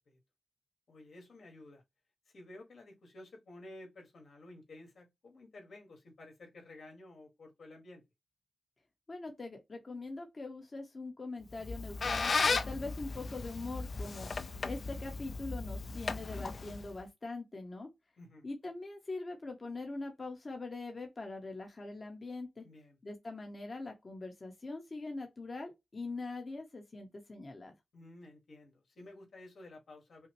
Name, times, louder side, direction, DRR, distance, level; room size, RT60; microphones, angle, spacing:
voice 1, 0.9-1.8 2.3-8.0 18.2-18.5 22.6-23.0 27.9-30.3, left 2 dB, 80° left, 1.7 m, -53 dB
voice 2, 9.1-14.3 14.6-17.9 18.4-22.6 23.0-27.7, left 3 dB, 40° left, 0.9 m, -42 dB
Squeak, 11.5-17.0, left 4 dB, 60° left, 0.5 m, -35 dB
5.6 x 2.0 x 3.0 m
wide cardioid pair, 95°, 0 cm